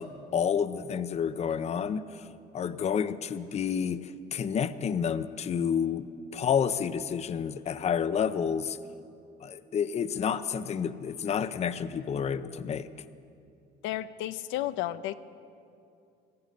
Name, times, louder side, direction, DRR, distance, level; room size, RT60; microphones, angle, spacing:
voice 1, 0.0-2.3 2.5-8.8 9.4-12.9, left 7 dB, 35° left, 13 dB, 0.6 m, -30 dB
voice 2, 13.8-15.1, left 14 dB, 85° left, 12 dB, 0.5 m, -32 dB
18.5 x 14.5 x 5.2 m, 2.5 s
cardioid pair, 125°, 19 cm